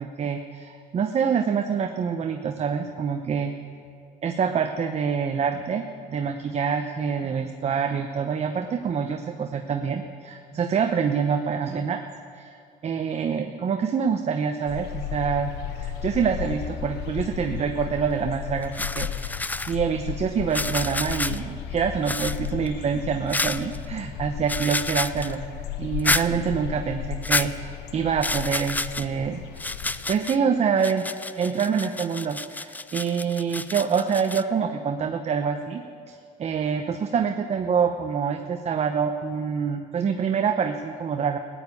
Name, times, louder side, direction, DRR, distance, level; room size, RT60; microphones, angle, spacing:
voice 1, 0.0-3.5 4.2-12.0 12.3-12.5 12.8-15.5 15.8-25.4 25.8-29.4 30.1-41.4, right 6 dB, 40° right, 6 dB, 0.8 m, -26 dB
sound 1, 14.7-30.1, left 10 dB, 85° left, 0.8 m, -35 dB
sound 2, 18.1-18.3 18.6-19.7 20.5-21.4 22.0-22.7 23.3-23.8 24.5-25.3 26.0-26.3 27.2-27.5 28.2-29.0 29.6-30.4 30.8-34.4, left 2 dB, 10° left, 0.4 m, -29 dB
15.5 x 9.2 x 9.6 m, 2.3 s
cardioid pair, 110°, 17 cm